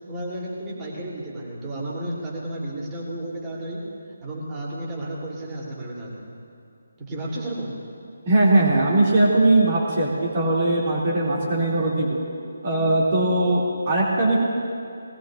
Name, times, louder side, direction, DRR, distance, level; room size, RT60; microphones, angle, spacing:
voice 1, 0.1-3.8 4.2-6.3 7.1-7.7, right 1 dB, 20° right, -5 dB, 3.3 m, -32 dB
voice 2, 8.2-12.2 12.6-14.4, right 2 dB, 40° right, -5 dB, 2.7 m, -20 dB
20.5 x 19.0 x 2.6 m, 2.5 s
figure-of-eight pair, 155°, 0 cm